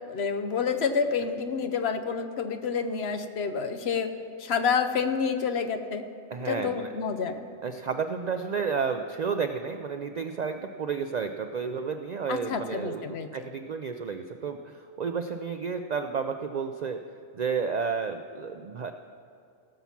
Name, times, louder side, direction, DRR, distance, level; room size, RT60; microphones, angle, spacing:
voice 1, 0.1-4.1 4.4-6.0 6.4-7.5 12.3-13.3, left 6 dB, 60° left, 8 dB, 0.9 m, -28 dB
voice 2, 6.3-6.9 7.6-17.0 17.3-18.9, right 5 dB, 90° right, 7 dB, 0.3 m, -31 dB
17.0 x 7.2 x 5.8 m, 2.5 s
omnidirectional pair, 1.3 m